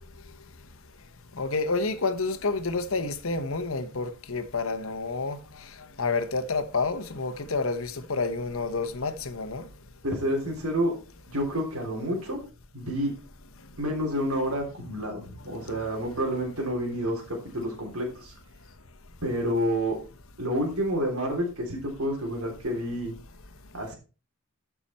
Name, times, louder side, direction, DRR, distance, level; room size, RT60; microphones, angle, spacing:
voice 1, 1.4-5.4 6.0-9.6, left 3 dB, 65° left, 1.1 m, -29 dB
voice 2, 10.0-10.9 11.3-12.4 12.7-13.1 13.8-18.3 19.2-20.0 20.4-23.1 23.7-24.0, equal, 80° right, 3.4 m, -29 dB
13.0 x 6.1 x 4.3 m
head